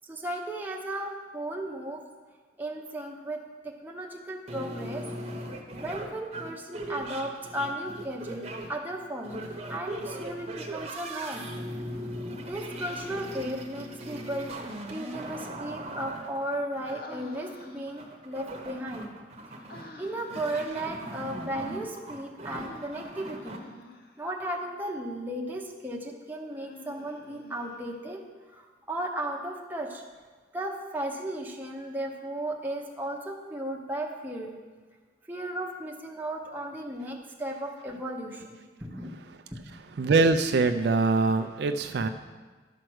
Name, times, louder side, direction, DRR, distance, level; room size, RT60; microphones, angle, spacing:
voice 1, 0.1-2.0 2.6-5.1 5.8-11.5 12.4-14.5 14.9-19.1 20.0-23.6 24.2-28.2 28.5-30.0 30.5-34.5 35.3-39.2 39.5-39.8 42.0-42.1, right 1 dB, 10° right, 0 dB, 0.9 m, -35 dB
sound 1, 4.5-23.6, right 1 dB, 35° right, 1.0 m, -39 dB
Human voice, 13.5-14.4 16.8-18.2 19.7-20.5 22.5-24.3 26.5-28.1, left 3 dB, 55° left, 0.7 m, -49 dB
voice 2, 40.0-42.1, right 3 dB, 65° right, 7 dB, 0.4 m, -23 dB
11.5 x 4.5 x 6.2 m, 1.4 s
head